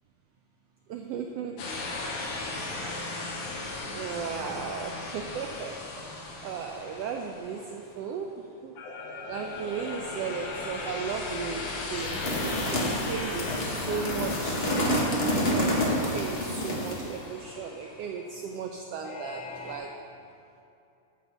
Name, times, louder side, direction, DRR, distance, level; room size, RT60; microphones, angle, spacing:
voice 1, 0.9-1.7 3.9-8.8 9.3-12.3 12.7-14.7 15.5-20.0, right 6 dB, 85° right, 3 dB, 1.4 m, -36 dB
sound 1, 1.6-8.0 8.8-18.1 19.0-19.8, left 3 dB, 80° left, 2.6 m, -37 dB
sound 2, 12.0-17.1, equal, 60° left, 0.6 m, -28 dB
9.4 x 6.2 x 6.9 m, 2.7 s
omnidirectional pair, 3.4 m